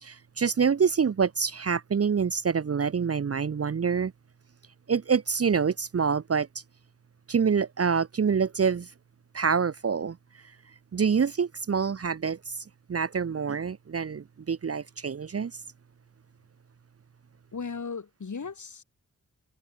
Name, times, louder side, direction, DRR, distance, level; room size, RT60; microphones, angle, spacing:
voice 1, 0.0-4.1 4.9-6.5 7.3-8.9 9.3-10.2 10.9-15.6, right 6 dB, 45° right, 0.8 m, -26 dB
voice 2, 17.5-18.8, left 5 dB, 60° left, 6.3 m, -36 dB
cardioid pair, 70°, 33 cm